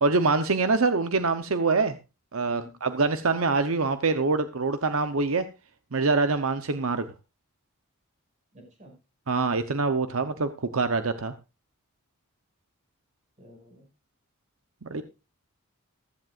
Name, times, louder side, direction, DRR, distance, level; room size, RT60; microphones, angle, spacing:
voice 1, 0.0-2.0 2.3-5.4 5.9-7.1 9.3-11.3 14.9-15.0, right 3 dB, 70° right, 9 dB, 0.9 m, -25 dB
voice 2, 8.5-8.9 13.4-13.9 14.9-15.0, equal, 35° right, 3 dB, 5.8 m, -51 dB
15.5 x 14.0 x 2.5 m, 0.29 s
head